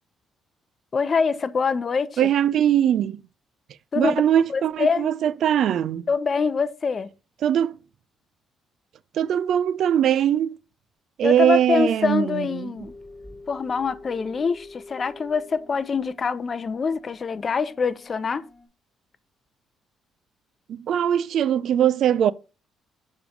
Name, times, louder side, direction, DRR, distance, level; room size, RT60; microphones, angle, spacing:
voice 1, 0.9-2.3 3.9-4.2 4.5-5.1 6.1-7.1 11.2-12.9 13.5-18.4, left 5 dB, 40° left, 0.5 m, -25 dB
voice 2, 2.2-3.2 4.0-6.1 7.4-7.8 9.1-10.6 11.2-12.7 20.7-22.3, right 10 dB, 65° right, 0.3 m, -21 dB
sound 1, 12.8-18.7, left 2 dB, ahead, 4.2 m, -46 dB
6.8 x 3.2 x 5.2 m
cardioid pair, 95°, 0 cm